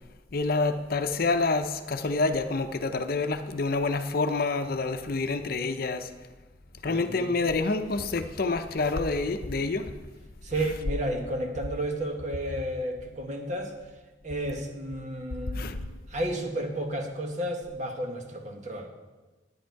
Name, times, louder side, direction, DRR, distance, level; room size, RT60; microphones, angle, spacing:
voice 1, 0.3-6.1 6.8-9.9 10.5-10.8 15.5-15.8, left 3 dB, 55° left, 8 dB, 0.7 m, -28 dB
voice 2, 6.8-7.3 10.4-13.7 14.2-15.7 16.1-18.9, right 1 dB, 45° right, 3 dB, 1.4 m, -32 dB
10.0 x 10.0 x 4.6 m, 1.2 s
head